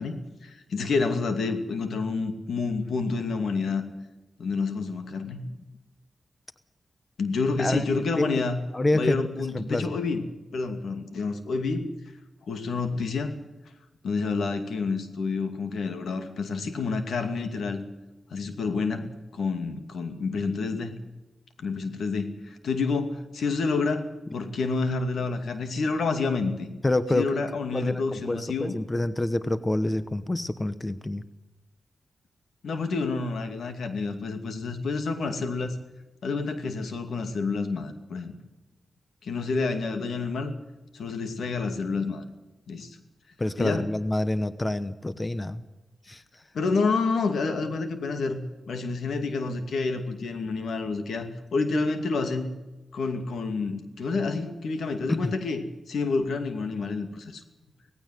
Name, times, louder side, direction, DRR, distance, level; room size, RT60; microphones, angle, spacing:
voice 1, 0.0-3.8 4.4-5.4 7.2-8.6 8.9-10.2 10.5-11.9 12.5-13.3 14.0-17.8 18.3-20.9 21.6-26.7 27.1-28.8 32.6-35.8 36.2-38.3 39.2-40.5 40.9-42.2 42.7-43.0 43.6-43.9 46.5-52.5 52.9-55.6 55.9-57.4, left 4 dB, 90° left, 8 dB, 2.5 m, -29 dB
voice 2, 8.7-9.2 9.5-9.9 26.8-27.4 27.7-31.2 43.4-45.6 46.1-46.2 55.1-55.3, left 2 dB, 20° left, 14 dB, 1.0 m, -27 dB
18.0 x 16.0 x 9.3 m, 1.1 s
wide cardioid pair, 90°, 0 cm